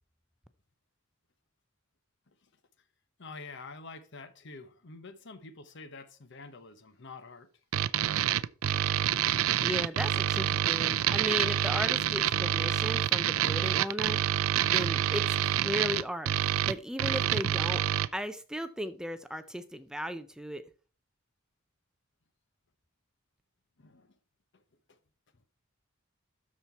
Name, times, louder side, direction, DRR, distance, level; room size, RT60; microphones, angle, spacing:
voice 1, 3.2-7.5 23.8-24.2 24.5-24.6 24.9-25.0, left 3 dB, 60° left, 1.0 m, -47 dB
sound 1, 7.7-18.1, right 11 dB, 85° right, 0.4 m, -27 dB
voice 2, 9.6-14.2 14.7-16.3 16.7-17.8 18.1-20.6, equal, 5° right, 0.5 m, -36 dB
12.5 x 4.3 x 4.5 m
head